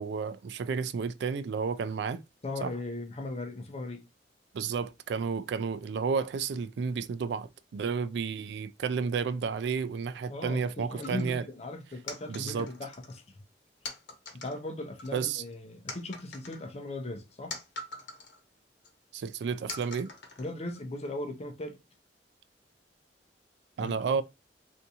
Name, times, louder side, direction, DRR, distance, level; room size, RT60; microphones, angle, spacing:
voice 1, 0.0-2.2 2.6-2.7 4.5-11.4 12.3-12.7 15.1-15.4 19.1-20.1 23.8-24.2, right 5 dB, 65° right, 0.3 m, -31 dB
voice 2, 2.4-4.0 10.3-13.4 14.3-17.6 20.4-21.8 23.8-24.2, left 2 dB, 35° left, 0.6 m, -38 dB
sound 1, 11.0-11.4 12.1-13.2 13.8-14.6 15.0-15.5 15.9-18.4 18.8-18.9 19.7-20.8, left 3 dB, 75° left, 1.0 m, -43 dB
3.5 x 2.6 x 2.7 m
head